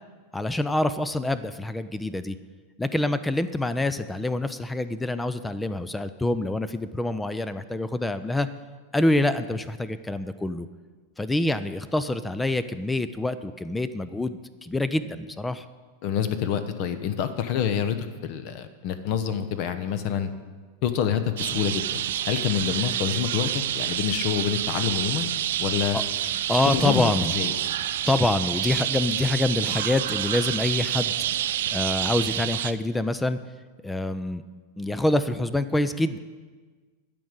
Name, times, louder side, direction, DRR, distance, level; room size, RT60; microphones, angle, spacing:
voice 1, 0.3-2.4 2.8-8.5 8.9-10.7 11.2-15.6 25.9-26.0 26.5-27.3 28.1-31.1 31.7-33.4 33.8-34.4 34.8-36.2, left 2 dB, 10° left, 13 dB, 0.4 m, -26 dB
voice 2, 16.0-20.3 20.8-21.9 22.3-25.3 25.6-26.0 26.7-27.5, left 8 dB, 45° left, 10 dB, 0.8 m, -27 dB
sound 1, 21.4-32.7, right 11 dB, 60° right, 0.4 m, -28 dB
12.0 x 5.2 x 8.9 m, 1.4 s
figure-of-eight pair, 90°, 0 cm